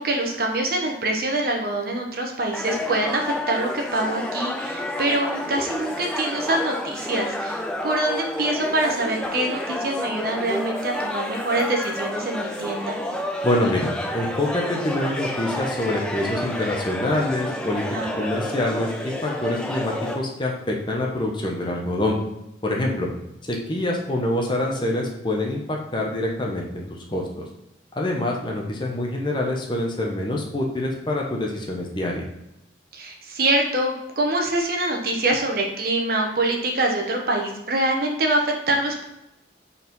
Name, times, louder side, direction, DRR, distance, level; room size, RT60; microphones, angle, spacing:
voice 1, 0.0-13.0 17.9-18.3 32.9-39.0, right 2 dB, 55° right, 2 dB, 1.0 m, -25 dB
sound 1, 2.5-20.2, left 1 dB, 5° left, 0.6 m, -30 dB
voice 2, 13.4-17.8 18.2-18.9 19.2-22.2 22.6-23.1 23.5-27.5 28.0-32.2, left 1 dB, 25° left, -1 dB, 1.0 m, -25 dB
4.9 x 4.2 x 5.3 m, 0.88 s
head